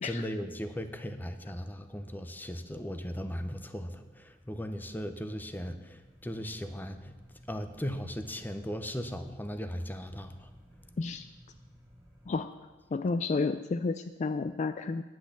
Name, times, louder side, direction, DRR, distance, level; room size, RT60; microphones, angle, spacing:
voice 1, 0.0-7.1 7.5-10.5, equal, 10° left, 8 dB, 0.7 m, -37 dB
sound 1, 6.0-12.4, equal, 5° right, 2.6 m, -57 dB
voice 2, 12.9-15.0, left 4 dB, 40° left, 11 dB, 0.3 m, -31 dB
10.0 x 6.2 x 8.3 m, 1.2 s
head